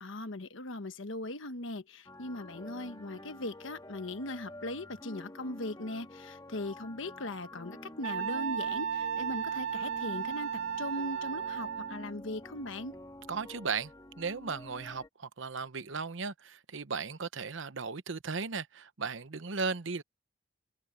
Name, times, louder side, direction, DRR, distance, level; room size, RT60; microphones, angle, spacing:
voice 1, 0.0-13.0, left 2 dB, 70° left, 1.2 m, -39 dB
sound 1, 2.1-15.1, left 1 dB, 20° left, 1.9 m, -49 dB
Wind instrument woodwind instrument, 8.0-12.1, right 8 dB, 85° right, 2.1 m, -34 dB
voice 2, 13.3-13.9 14.2-20.0, right 5 dB, 70° right, 0.9 m, -36 dB
head